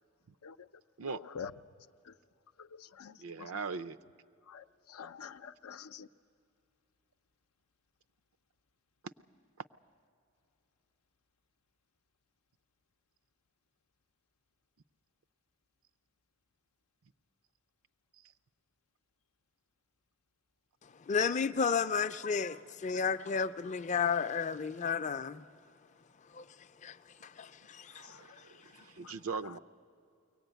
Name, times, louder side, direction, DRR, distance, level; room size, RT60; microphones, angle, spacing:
voice 1, 1.0-1.5 2.1-2.2 2.6-3.5 4.5-6.1 28.0-28.2 29.0-29.1 29.4-29.5, left 6 dB, 90° left, 0.6 m, -47 dB
voice 2, 3.2-4.0 9.0-9.1 27.9-29.6, right 5 dB, 75° right, 0.5 m, -40 dB
voice 3, 20.8-25.5 26.3-27.0 27.2-28.5, left 6 dB, 35° left, 0.4 m, -33 dB
23.0 x 18.5 x 9.1 m
head